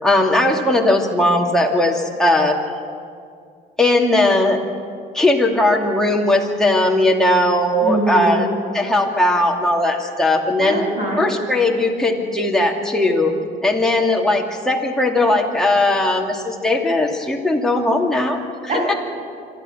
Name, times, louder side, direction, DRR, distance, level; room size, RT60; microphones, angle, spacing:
voice 1, 0.0-2.6 3.8-4.6 5.1-8.5 8.7-10.8 11.2-13.3 13.6-18.4, left 1 dB, 5° left, -1 dB, 2.6 m, -18 dB
voice 2, 7.8-8.5 10.6-11.3 18.7-19.0, right 1 dB, 45° right, -1 dB, 7.6 m, -22 dB
25.5 x 13.0 x 7.9 m, 2.2 s
cardioid pair, 110°, 17 cm